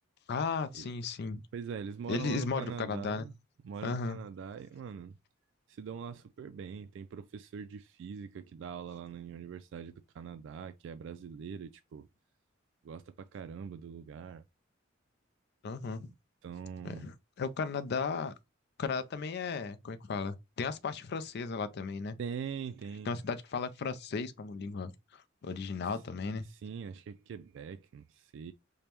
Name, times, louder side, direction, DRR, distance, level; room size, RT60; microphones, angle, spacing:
voice 1, 0.3-1.4 2.1-3.2 3.8-4.2 15.6-16.1 16.8-18.3 18.8-22.2 23.1-26.4, left 4 dB, 55° left, 0.4 m, -35 dB
voice 2, 1.5-3.4 3.6-5.1 5.7-12.1 12.8-14.4 16.4-17.1 22.2-23.2 26.4-28.5, right 7 dB, 65° right, 0.3 m, -42 dB
5.1 x 2.2 x 2.9 m
head